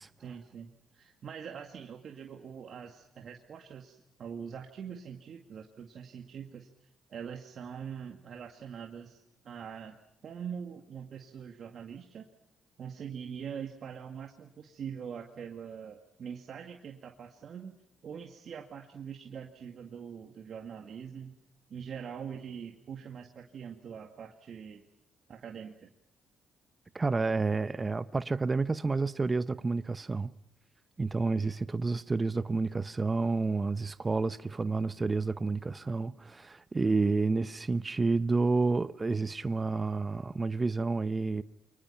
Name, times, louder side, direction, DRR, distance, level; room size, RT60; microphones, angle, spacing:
voice 1, 0.2-9.2 9.4-10.0 10.2-12.2 12.8-17.8 18.0-21.3 21.7-24.9 25.3-25.9, right 7 dB, 60° right, 2.1 m, -43 dB
voice 2, 26.9-30.3 31.0-41.4, right 3 dB, 30° right, 0.8 m, -30 dB
29.0 x 24.0 x 5.7 m
supercardioid pair, 60°, 0 cm